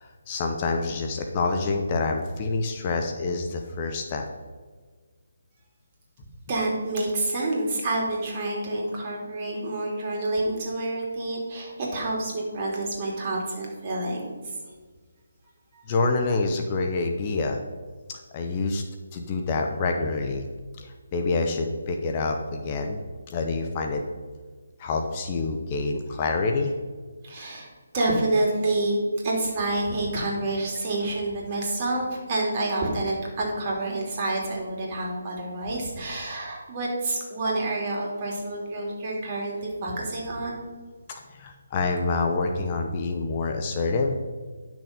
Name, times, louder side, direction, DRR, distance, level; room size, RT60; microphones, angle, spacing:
voice 1, 0.0-4.3 15.9-17.6 18.1-18.8 19.1-20.4 20.8-23.0 23.3-24.0 24.8-26.7 41.1-44.2, left 3 dB, 30° left, 4 dB, 0.9 m, -27 dB
voice 2, 6.5-14.3 15.7-15.8 27.2-27.7 27.9-29.0 29.2-40.6, right 2 dB, 35° right, -2 dB, 3.0 m, -28 dB
10.5 x 6.3 x 5.3 m, 1.5 s
figure-of-eight pair, 145°, 0 cm